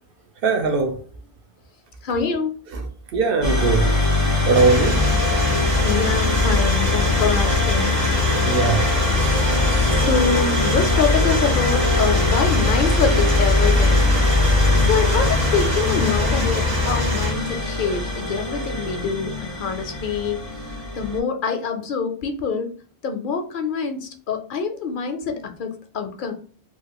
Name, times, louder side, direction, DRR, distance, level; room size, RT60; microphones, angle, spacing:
voice 1, 0.4-1.0 2.7-3.9 4.5-5.0 8.4-8.8, right 4 dB, 65° right, 0.8 m, -20 dB
voice 2, 2.0-2.5 5.8-8.0 9.9-14.2 14.8-20.4 21.0-22.7 23.0-26.3, left 6 dB, 60° left, 0.6 m, -25 dB
sound 1, 3.4-21.2, left 2 dB, 20° right, 0.7 m, -22 dB
sound 2, 4.5-17.3, left 3 dB, 45° right, 1.2 m, -24 dB
sound 3, 6.6-15.8, left 1 dB, 15° left, 0.3 m, -39 dB
3.1 x 2.4 x 2.8 m
omnidirectional pair, 1.0 m